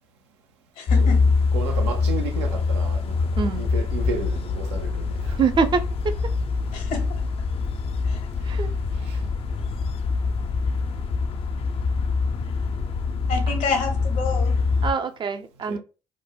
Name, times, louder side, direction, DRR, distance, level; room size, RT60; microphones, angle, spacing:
voice 1, 0.8-1.3 6.7-7.2 8.0-8.3 13.3-14.7, left 4 dB, 65° left, 0.9 m, -29 dB
sound 1, 0.9-14.9, left 4 dB, 45° left, 0.4 m, -24 dB
voice 2, 1.5-5.4 8.9-9.3 10.2-10.3 15.7-15.8, right 4 dB, 85° right, 0.5 m, -33 dB
voice 3, 5.4-6.1 8.4-8.7 13.5-13.6 14.8-15.8, right 5 dB, 35° right, 0.4 m, -24 dB
3.1 x 2.0 x 2.2 m
hypercardioid pair, 60°, 14 cm